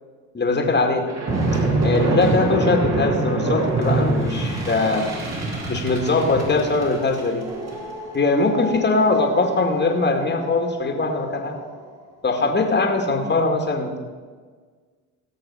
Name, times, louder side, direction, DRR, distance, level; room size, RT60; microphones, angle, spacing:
voice 1, 0.3-1.1 1.8-5.1 5.7-7.5 8.1-11.6 12.2-14.0, left 3 dB, 30° left, 3 dB, 2.1 m, -21 dB
sound 1, 1.1-11.7, right 2 dB, 45° right, 3.8 m, -26 dB
17.0 x 6.5 x 5.6 m, 1.5 s
supercardioid pair, 70°, 36 cm